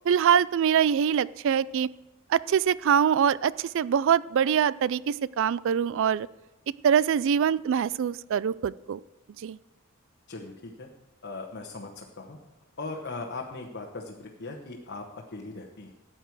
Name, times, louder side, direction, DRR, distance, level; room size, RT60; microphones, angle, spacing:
voice 1, 0.1-1.9 2.3-6.3 6.8-9.0 9.4-9.6, right 8 dB, 60° right, 20 dB, 0.3 m, -24 dB
voice 2, 10.3-10.9 11.2-12.4 12.8-15.9, left 3 dB, 50° left, 0 dB, 1.1 m, -39 dB
14.0 x 8.9 x 4.7 m, 1.0 s
head